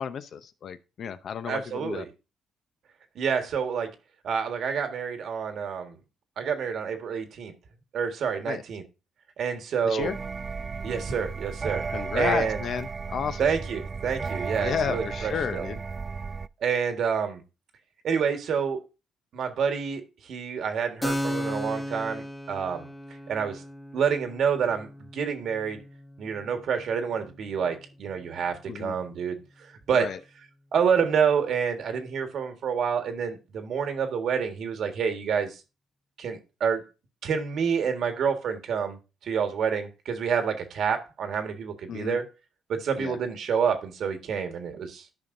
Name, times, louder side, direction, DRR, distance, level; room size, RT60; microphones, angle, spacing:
voice 1, 0.0-2.1 8.5-8.6 9.8-10.2 11.9-13.5 14.6-15.8 28.7-29.0 29.9-30.2 41.9-42.2 43.0-43.2, left 7 dB, 60° left, 0.7 m, -32 dB
voice 2, 1.5-2.1 3.1-3.9 4.2-6.0 6.4-7.5 7.9-8.8 9.4-10.1 10.8-11.9 12.1-12.6 13.4-15.6 16.6-17.4 18.0-18.8 19.3-22.9 23.3-23.6 23.9-25.8 26.2-29.4 29.9-30.1 30.7-35.6 36.2-36.8 37.2-42.3 42.7-45.1, right 6 dB, 65° right, 1.6 m, -28 dB
sound 1, 10.0-16.5, right 5 dB, 35° right, 0.3 m, -34 dB
Keyboard (musical), 21.0-28.3, equal, 10° left, 1.1 m, -36 dB
13.0 x 5.4 x 2.6 m
cardioid pair, 95°, 0 cm